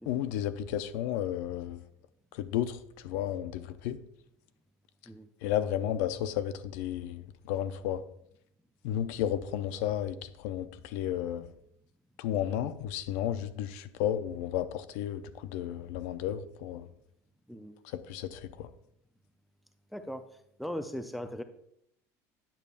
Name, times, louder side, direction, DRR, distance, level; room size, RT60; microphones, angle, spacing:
voice 1, 0.1-1.9 2.3-4.0 5.4-8.0 8.8-11.5 12.2-16.9 18.1-18.7, left 11 dB, 85° left, 12 dB, 0.5 m, -33 dB
voice 2, 19.9-20.3 20.6-21.4, equal, ahead, 8 dB, 0.3 m, -39 dB
9.1 x 6.6 x 2.5 m, 0.72 s
cardioid pair, 165°, 8 cm